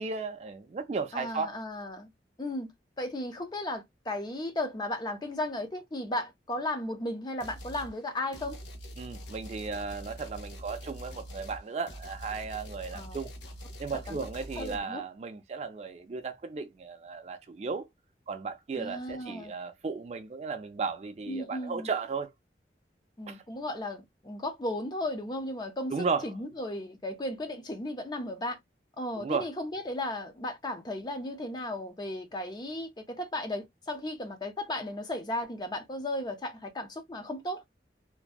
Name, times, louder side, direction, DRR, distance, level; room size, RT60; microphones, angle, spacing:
voice 1, 0.0-1.6 9.0-13.3 13.8-17.9 18.3-22.3 23.3-23.4 25.9-26.2 29.2-29.5, right 4 dB, 40° right, 0.3 m, -35 dB
voice 2, 1.1-2.1 2.4-2.7 3.0-8.6 12.9-13.2 13.9-14.2 14.6-15.0 18.8-19.5 21.3-21.9 23.2-25.9 26.2-28.6 29.0-37.7, left 1 dB, 25° left, 0.4 m, -35 dB
sound 1, 7.4-7.9 8.3-14.8, equal, 80° left, 0.6 m, -44 dB
2.6 x 2.1 x 2.2 m
head